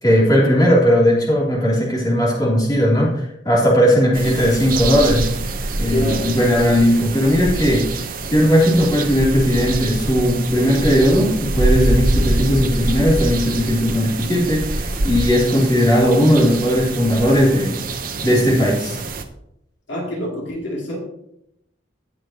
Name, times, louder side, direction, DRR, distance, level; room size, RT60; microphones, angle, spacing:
voice 1, 0.0-5.5 5.8-8.0 8.3-17.8 18.2-19.0, equal, 20° left, -5 dB, 3.0 m, -17 dB
voice 2, 3.8-4.3 5.9-6.3 19.9-21.0, left 1 dB, 70° left, -2 dB, 2.6 m, -26 dB
sound 1, 4.1-19.2, right 2 dB, 45° right, 0.8 m, -25 dB
18.0 x 6.3 x 2.9 m, 0.79 s
head